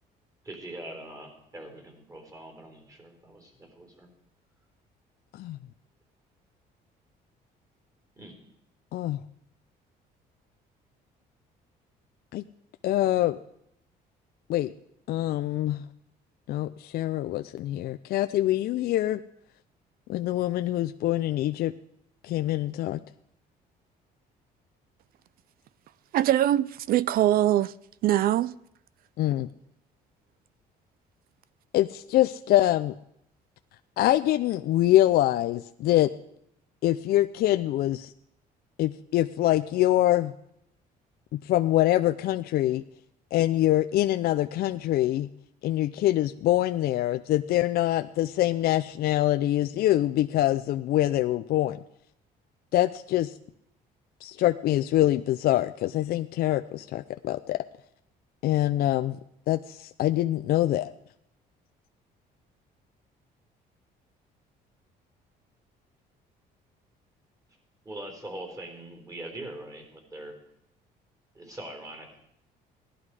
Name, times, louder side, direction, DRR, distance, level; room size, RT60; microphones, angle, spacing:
voice 1, 0.4-4.1 8.2-8.3 67.8-70.3 71.3-72.2, right 1 dB, 20° right, 3.8 m, -42 dB
voice 2, 12.8-13.4 14.5-14.7 15.1-15.8 16.5-19.2 20.1-21.7 22.2-23.0 29.2-29.5 31.7-32.9 34.0-36.1 36.8-38.1 38.8-40.3 41.3-42.8 43.3-45.3 45.6-51.8 52.7-53.3 54.2-57.6 58.4-59.2 59.5-60.9, left 14 dB, 65° left, 0.5 m, -24 dB
voice 3, 26.1-27.7 28.0-28.5, right 12 dB, 60° right, 0.5 m, -22 dB
16.5 x 11.5 x 4.8 m
cardioid pair, 110°, 17 cm